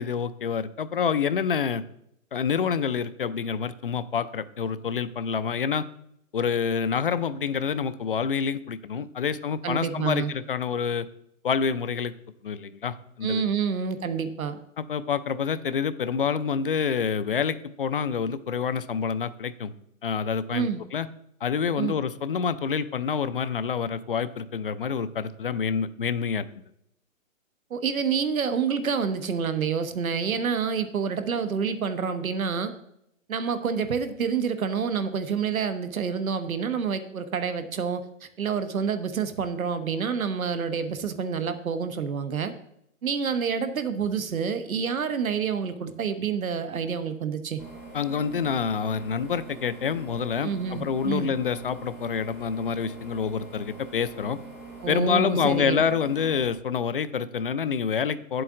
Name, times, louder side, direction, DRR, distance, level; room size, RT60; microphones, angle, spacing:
voice 1, 0.0-1.8 2.3-5.8 6.3-11.1 11.4-12.1 12.4-13.4 14.8-19.7 20.0-21.1 21.4-26.4 47.9-54.4 54.9-58.4, left 6 dB, 45° left, 14 dB, 0.5 m, -27 dB
voice 2, 9.6-10.3 13.2-14.6 20.5-20.8 21.8-21.9 27.7-32.7 33.3-42.5 43.0-47.6 50.4-51.3 54.8-55.8, right 6 dB, 85° right, 10 dB, 1.1 m, -28 dB
sound 1, 47.6-56.5, right 2 dB, 5° right, 0.8 m, -44 dB
9.4 x 7.7 x 3.7 m, 0.76 s
hypercardioid pair, 160°, 41 cm